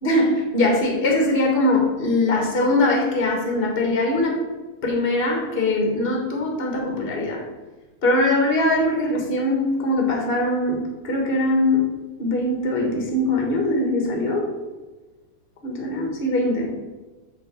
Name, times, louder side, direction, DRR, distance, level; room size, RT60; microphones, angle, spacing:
voice 1, 0.0-4.4 4.8-7.4 8.0-11.9 12.2-14.5 15.6-16.7, left 1 dB, 30° left, 1 dB, 1.3 m, -21 dB
6.7 x 3.9 x 6.1 m, 1.2 s
omnidirectional pair, 2.4 m